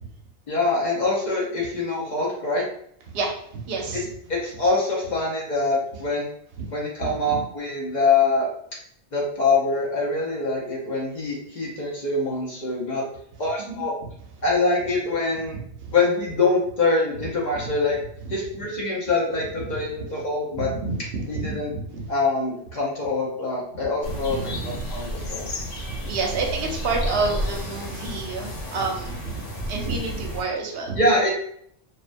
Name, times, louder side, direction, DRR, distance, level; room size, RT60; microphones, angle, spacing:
voice 1, 0.5-2.6 4.3-6.3 6.7-8.5 9.1-13.0 13.4-14.0 14.4-15.6 15.9-18.0 18.3-20.7 21.3-21.7 22.1-25.5 31.0-31.3, left 3 dB, 50° left, -3 dB, 0.6 m, -24 dB
voice 2, 3.1-4.1 6.6-6.7 7.0-7.4 13.7-13.8 15.5-15.9 17.6-17.7 18.2-18.3 19.6-19.7 20.5-22.1 24.1-24.8 25.2-25.3 26.0-29.4 29.7-31.0, right 3 dB, 65° right, 1 dB, 0.8 m, -29 dB
sound 1, 24.0-30.4, equal, 85° left, 1.0 m, -32 dB
2.4 x 2.1 x 2.5 m, 0.66 s
omnidirectional pair, 1.2 m